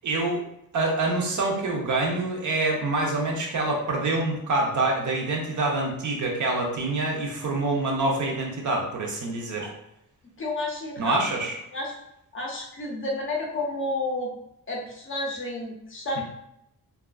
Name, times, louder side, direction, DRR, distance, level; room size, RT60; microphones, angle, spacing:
voice 1, 0.0-0.4 0.7-9.7 11.0-11.6 16.2-16.3, right 2 dB, 55° right, 0 dB, 0.5 m, -26 dB
voice 2, 10.4-11.2 11.7-12.0 12.3-14.3 14.7-16.2, left 2 dB, 35° left, -2 dB, 0.4 m, -31 dB
2.3 x 2.3 x 2.3 m, 0.81 s
wide cardioid pair, 180°, 37 cm